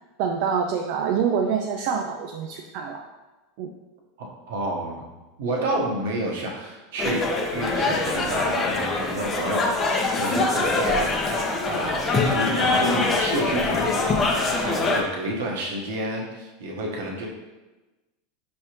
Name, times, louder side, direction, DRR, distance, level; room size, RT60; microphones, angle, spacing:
voice 1, 0.2-3.0 3.6-3.7 8.3-8.4 14.8-14.9, right 6 dB, 60° right, 2 dB, 0.4 m, -26 dB
voice 2, 4.2-9.8 10.1-11.1 11.6-17.3, right 1 dB, 80° right, -1 dB, 1.0 m, -30 dB
sound 1, 7.0-15.0, left 3 dB, 30° left, 0.7 m, -23 dB
5.3 x 3.2 x 3.0 m, 1.1 s
hypercardioid pair, 105°, 0 cm